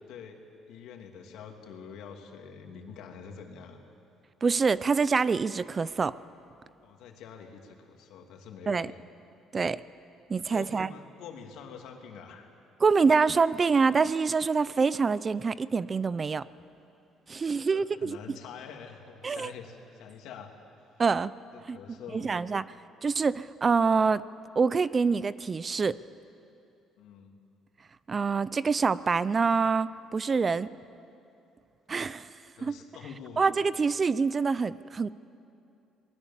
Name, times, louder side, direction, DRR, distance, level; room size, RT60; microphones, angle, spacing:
voice 1, 0.1-0.4 0.7-3.8 6.8-9.0 10.5-12.5 17.6-20.5 21.5-22.3 27.0-27.4 32.6-33.5, left 7 dB, 80° left, 3 dB, 2.7 m, -46 dB
voice 2, 4.4-6.1 8.7-8.9 9.5-9.8 10.3-10.9 12.8-16.4 17.3-18.2 19.2-19.5 21.0-21.3 21.7-21.8 22.1-22.6 23.0-24.2 24.6-26.0 28.1-30.7 31.9-32.3 32.6-32.8 33.4-35.1, right 5 dB, 30° right, 17 dB, 0.5 m, -26 dB
27.0 x 20.0 x 7.4 m, 2.7 s
cardioid pair, 100°, 0 cm